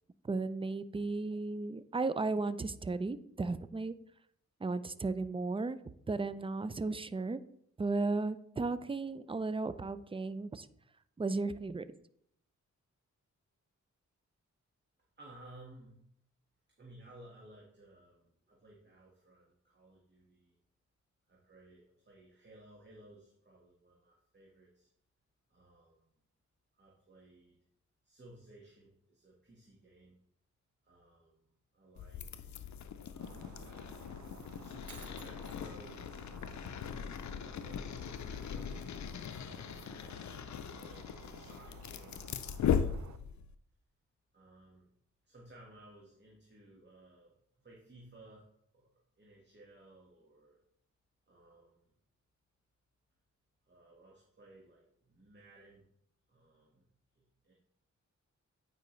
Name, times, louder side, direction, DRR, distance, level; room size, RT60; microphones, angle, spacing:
voice 1, 0.2-3.9 4.6-5.8 6.1-7.4 7.8-10.7 11.2-11.8, right 3 dB, 20° right, 14 dB, 0.4 m, -35 dB
voice 2, 15.2-16.0 16.8-20.6 21.3-24.9 25.5-26.1 26.7-27.6 28.0-30.1 30.8-32.5 33.0-33.5 34.6-38.9 39.5-40.0 40.7-41.1 41.3-43.0 44.3-44.9 45.2-47.4 47.6-48.5 48.7-48.9 49.2-50.6 51.3-51.9 53.7-55.8 56.3-56.9 57.1-57.5, right 1 dB, 35° right, -4 dB, 1.6 m, -58 dB
sound 1, 32.0-43.5, left 8 dB, 70° left, 0.5 m, -39 dB
Shatter, 33.2-43.2, right 8 dB, 65° right, 0.5 m, -55 dB
9.0 x 5.0 x 3.2 m, 0.70 s
cardioid pair, 70°, 30 cm